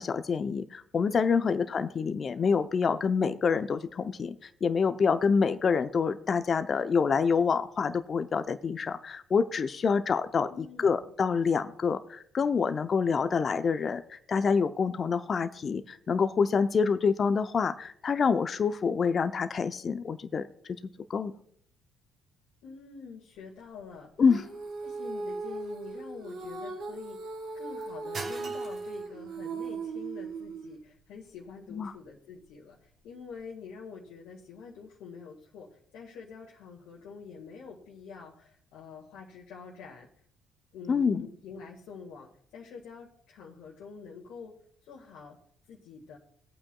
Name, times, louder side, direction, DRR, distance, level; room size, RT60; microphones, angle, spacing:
voice 1, 0.0-4.4 4.6-20.5 21.1-21.3 24.2-24.4 31.7-31.9 40.9-41.3, left 5 dB, 45° left, 10 dB, 0.6 m, -27 dB
voice 2, 10.5-11.1 22.6-24.1 24.8-40.1 40.7-44.6 44.8-45.4 45.7-46.2, left 5 dB, 65° left, -3 dB, 1.8 m, -46 dB
sound 1, 23.4-33.4, right 3 dB, 45° right, 1.9 m, -49 dB
Female singing, 24.3-30.8, right 3 dB, 65° right, 2.0 m, -38 dB
20.0 x 8.6 x 2.3 m, 0.62 s
hypercardioid pair, 50°, 0 cm